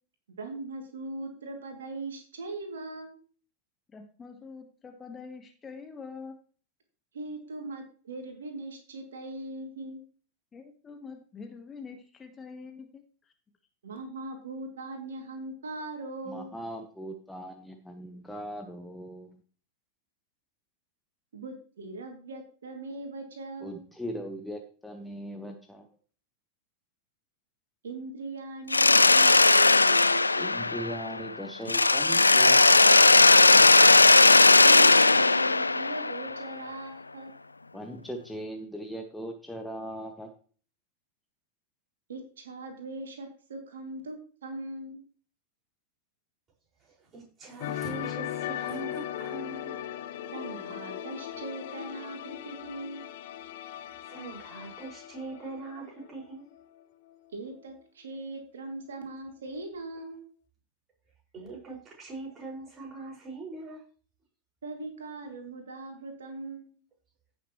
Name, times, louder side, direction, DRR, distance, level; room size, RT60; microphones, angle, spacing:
voice 1, 0.4-3.2 7.1-10.0 13.8-16.5 21.3-23.8 27.8-30.3 34.6-37.3 42.1-45.0 50.3-53.0 57.3-60.2 64.6-66.7, right 2 dB, 65° right, 3 dB, 2.6 m, -40 dB
voice 2, 3.9-6.4 10.5-13.0, left 5 dB, 20° left, 6 dB, 1.2 m, -45 dB
voice 3, 16.3-19.3 23.6-25.9 30.4-32.7 37.7-40.3, equal, 5° left, 4 dB, 1.1 m, -39 dB
Mechanisms, 28.7-31.3 31.7-36.5, left 3 dB, 80° left, 0.3 m, -18 dB
voice 4, 46.8-49.8 54.0-56.5 61.3-63.8, right 3 dB, 25° right, -2 dB, 5.3 m, -42 dB
sound 1, 47.6-56.3 56.5-56.8, left 11 dB, 55° left, 0.7 m, -38 dB
16.0 x 6.6 x 3.1 m, 0.42 s
figure-of-eight pair, 90°, 0 cm